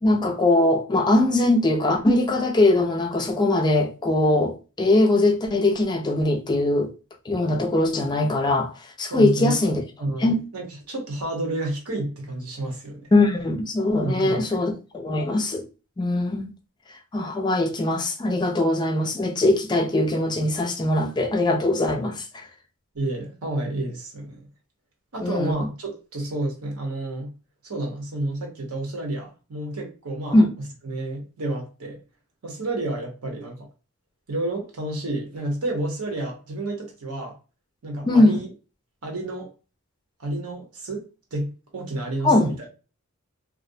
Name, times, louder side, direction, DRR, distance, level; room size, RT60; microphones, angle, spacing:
voice 1, 0.0-6.9 7.3-8.7 9.0-9.8 10.2-10.4 13.1-15.6 16.0-16.5 17.1-22.2 25.2-25.5 30.3-30.5 38.0-38.4 42.2-42.5, left 2 dB, 20° left, 0.3 m, -21 dB
voice 2, 9.1-9.6 10.0-13.1 14.0-14.6 22.9-24.5 25.1-27.3 27.6-32.0 32.4-33.7 34.3-37.4 37.8-38.5 39.0-39.5 40.2-42.7, right 1 dB, 85° right, 0.9 m, -30 dB
2.5 x 2.0 x 2.6 m
head